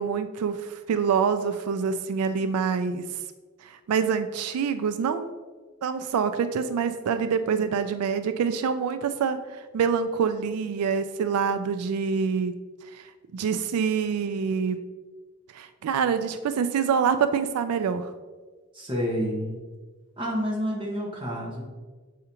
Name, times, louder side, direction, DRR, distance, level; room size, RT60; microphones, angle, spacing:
voice 1, 0.0-3.2 3.6-5.3 5.8-12.5 12.8-14.8 15.5-18.1, right 6 dB, 90° right, 10 dB, 0.3 m, -26 dB
voice 2, 18.7-19.6 20.2-21.6, equal, 20° right, -3 dB, 1.2 m, -29 dB
6.8 x 4.9 x 2.9 m, 1.4 s
head